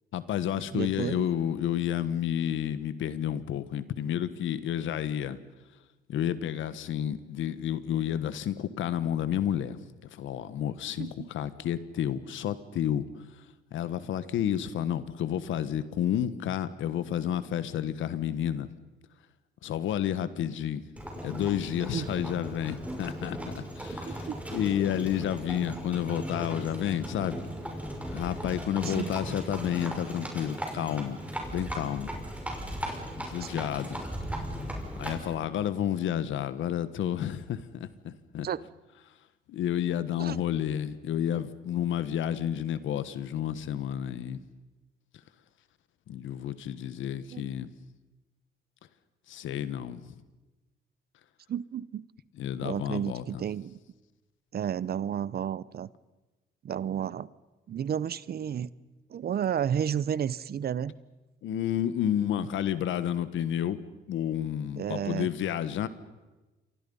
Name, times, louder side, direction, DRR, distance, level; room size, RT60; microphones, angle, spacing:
voice 1, 0.1-5.4 6.1-9.8 10.1-13.1 13.7-18.7 19.6-20.8 21.2-27.5 28.1-31.2 31.5-32.1 33.2-34.0 34.5-38.5 39.5-44.4 46.1-47.7 49.3-50.1 52.4-53.4 61.4-63.8 64.1-65.9, left 10 dB, 80° left, 14 dB, 1.4 m, -31 dB
voice 2, 0.7-1.3 11.0-11.3 21.9-22.1 24.0-24.3 28.8-29.1 33.4-33.5 38.4-38.6 40.2-40.4 47.3-47.5 51.5-52.0 52.6-53.8 54.5-55.9 56.6-57.3 57.7-58.7 59.1-60.9 64.8-65.3, right 9 dB, 50° right, 20 dB, 0.8 m, -32 dB
Livestock farm animals working animals, 21.0-35.3, equal, 5° right, 5.7 m, -37 dB
28.5 x 24.0 x 5.5 m, 1.1 s
cardioid pair, 90°, 20 cm